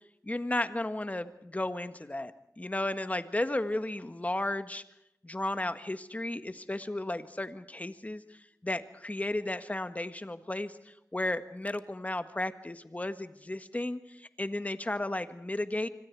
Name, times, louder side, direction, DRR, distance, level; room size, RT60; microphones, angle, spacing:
voice 1, 0.2-4.8 5.2-15.9, left 1 dB, 25° left, 10 dB, 1.7 m, -34 dB
26.5 x 25.0 x 4.8 m, 0.80 s
wide cardioid pair, 70°, 6 cm